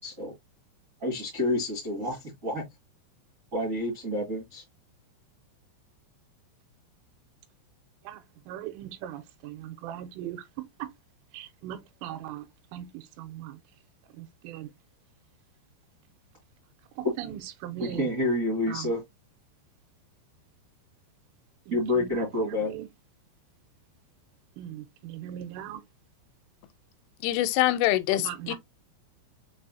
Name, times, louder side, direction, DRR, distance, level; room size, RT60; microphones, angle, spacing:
voice 1, 0.0-0.3 1.0-2.6 3.5-4.6 17.0-17.1 17.8-19.0 21.7-22.7, left 1 dB, 65° right, 0.8 m, -28 dB
voice 2, 8.5-10.4 11.3-12.4 12.7-12.8 13.2-13.5 14.4-14.7 17.2-18.0 18.7-18.8 22.6-22.8 24.6-25.8 28.3-28.6, right 11 dB, 85° right, 3.3 m, -39 dB
voice 3, 27.2-28.6, left 15 dB, 85° left, 3.0 m, -25 dB
7.0 x 2.7 x 2.7 m
omnidirectional pair, 5.6 m